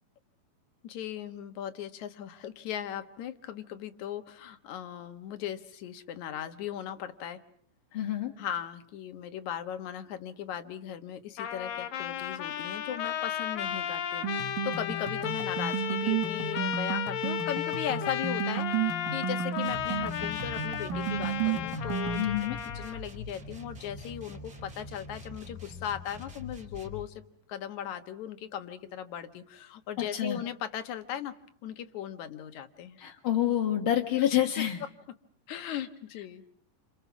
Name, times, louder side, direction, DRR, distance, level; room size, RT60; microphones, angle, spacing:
voice 1, 0.8-7.4 8.4-27.2 27.5-31.3 31.6-33.0 34.2-34.3 35.5-36.5, left 10 dB, 65° left, 9 dB, 2.5 m, -38 dB
voice 2, 7.9-8.3 22.2-22.6 30.1-30.4 33.0-34.8, left 11 dB, 50° left, 0 dB, 1.8 m, -27 dB
Trumpet, 11.4-23.0, left 10 dB, 90° left, 3.0 m, -34 dB
sound 1, 14.2-22.2, right 8 dB, 70° right, 2.8 m, -33 dB
sound 2, 19.6-27.1, left 3 dB, 25° right, 3.3 m, -44 dB
29.0 x 27.5 x 6.1 m, 0.64 s
omnidirectional pair, 3.9 m